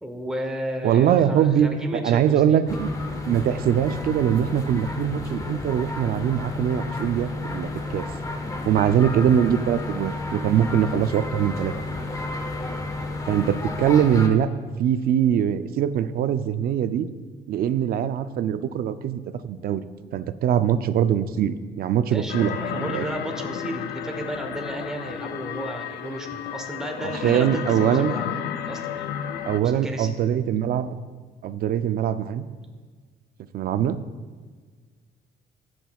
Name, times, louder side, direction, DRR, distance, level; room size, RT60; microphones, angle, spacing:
voice 1, 0.0-2.6 22.1-28.4 28.7-29.1 29.6-30.1, right 1 dB, 5° right, 2 dB, 1.0 m, -33 dB
voice 2, 0.8-1.7 2.0-2.9 3.3-8.0 8.7-12.0 13.3-14.5 14.8-17.1 17.5-19.8 20.1-23.0 27.0-28.1 29.4-30.9 31.4-32.5 33.5-34.0, right 9 dB, 65° right, 12 dB, 0.5 m, -22 dB
sound 1, 2.7-14.3, left 2 dB, 20° left, 0.8 m, -31 dB
sound 2, 22.3-29.6, left 10 dB, 80° left, 0.5 m, -32 dB
17.0 x 6.1 x 2.4 m, 1.5 s
cardioid pair, 130°, 17 cm